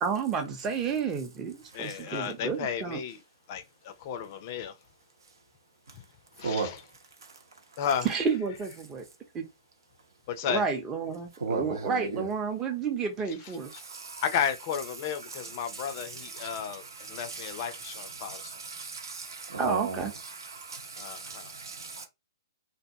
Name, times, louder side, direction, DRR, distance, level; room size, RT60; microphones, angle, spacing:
voice 1, 0.0-3.0 8.0-9.0 9.3-9.4 10.4-13.7 19.6-20.1, right 5 dB, 20° right, 0.7 m, -31 dB
voice 2, 1.7-3.2 3.5-4.8 5.9-6.0 6.4-6.8 7.8-8.1 10.3-10.6 13.3-13.4 13.7-13.8 14.2-18.5 21.0-21.5, left 8 dB, 40° left, 0.4 m, -33 dB
voice 3, 6.4-6.8 7.2-7.3 11.4-12.3 13.6-14.2 15.3-22.1, right 4 dB, 70° right, 0.9 m, -37 dB
2.5 x 2.2 x 2.7 m
hypercardioid pair, 125°, 2 cm